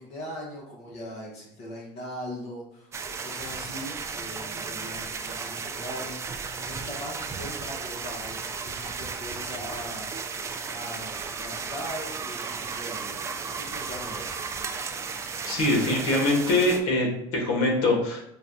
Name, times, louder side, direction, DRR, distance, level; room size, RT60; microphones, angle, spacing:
voice 1, 0.0-10.1 10.7-14.4, left 1 dB, 50° left, -3 dB, 1.0 m, -40 dB
sound 1, 2.9-16.8, right 5 dB, 20° right, 0.3 m, -34 dB
voice 2, 15.4-18.3, left 2 dB, 70° left, 0 dB, 1.2 m, -23 dB
5.2 x 2.2 x 2.6 m, 0.76 s
cardioid pair, 130°, 14 cm